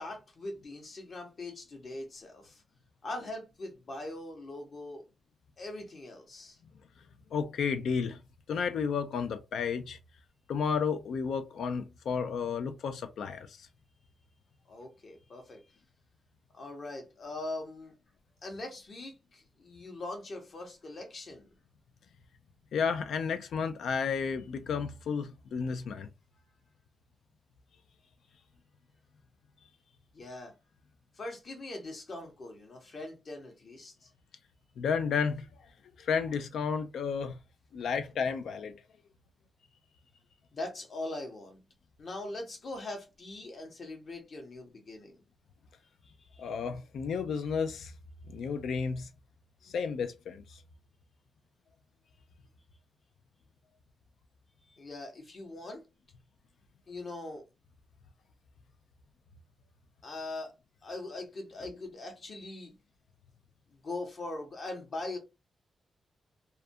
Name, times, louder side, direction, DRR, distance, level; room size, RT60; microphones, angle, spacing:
voice 1, 0.0-2.6 3.0-5.1 5.6-6.6 14.7-15.6 16.5-17.9 18.4-21.5 30.1-30.5 31.1-34.1 40.5-41.6 42.0-45.2 46.0-46.5 54.7-55.9 56.9-57.5 60.0-60.5 60.8-62.7 63.7-65.2, left 2 dB, 45° left, 0.9 m, -41 dB
voice 2, 7.3-8.2 8.5-10.0 10.5-13.7 22.7-26.1 34.8-35.5 36.0-37.3 37.7-38.8 46.4-47.9 48.3-49.1 49.7-50.4, left 6 dB, 90° left, 0.4 m, -32 dB
2.4 x 2.2 x 2.6 m
wide cardioid pair, 150°, 0 cm